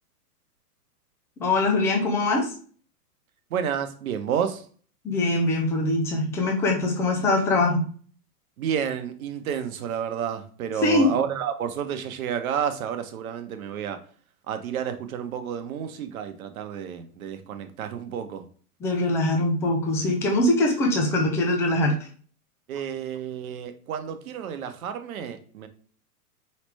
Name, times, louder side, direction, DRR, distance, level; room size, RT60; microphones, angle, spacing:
voice 1, 1.4-2.5 5.0-7.8 10.8-11.1 18.8-22.0, left 2 dB, 5° left, 0 dB, 0.4 m, -22 dB
voice 2, 3.5-4.7 8.6-14.0 14.5-18.5 22.7-25.7, right 8 dB, 60° right, 8 dB, 1.0 m, -30 dB
4.9 x 3.3 x 3.3 m, 0.44 s
hypercardioid pair, 115°, 47 cm